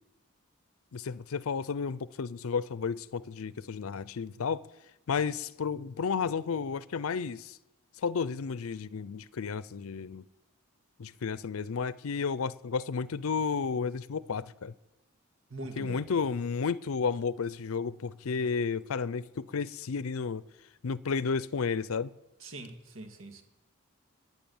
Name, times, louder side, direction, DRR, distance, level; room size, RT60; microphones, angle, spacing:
voice 1, 0.9-4.7 5.1-7.6 8.0-10.3 11.0-14.7 15.8-20.4 20.8-22.1, left 5 dB, 75° left, 0.5 m, -32 dB
voice 2, 15.5-16.0 22.4-23.4, right 1 dB, 65° right, 2.2 m, -42 dB
21.5 x 9.5 x 7.1 m
head